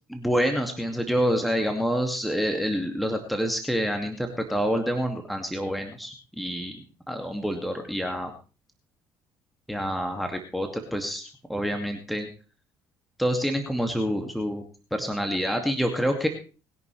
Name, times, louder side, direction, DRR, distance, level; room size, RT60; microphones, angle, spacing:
voice 1, 0.1-6.8 7.1-8.3 9.7-12.3 13.2-14.6 14.9-16.3, equal, ahead, 4 dB, 2.4 m, -27 dB
20.5 x 10.5 x 3.4 m, 0.34 s
hypercardioid pair, 55°, 11 cm